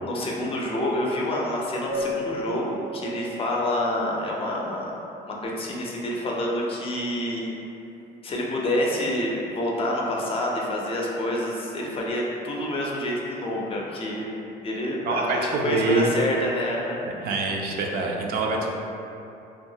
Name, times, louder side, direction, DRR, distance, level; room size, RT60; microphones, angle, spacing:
voice 1, 0.0-4.9 5.3-7.6 8.2-14.3 14.6-17.3, left 1 dB, 35° left, -2 dB, 0.5 m, -27 dB
Keyboard (musical), 1.9-4.3, left 1 dB, 90° right, 0.8 m, -34 dB
voice 2, 15.0-16.1 17.2-18.7, right 3 dB, 65° right, 0 dB, 0.4 m, -25 dB
2.7 x 2.3 x 2.7 m, 2.8 s
cardioid pair, 110°, 17 cm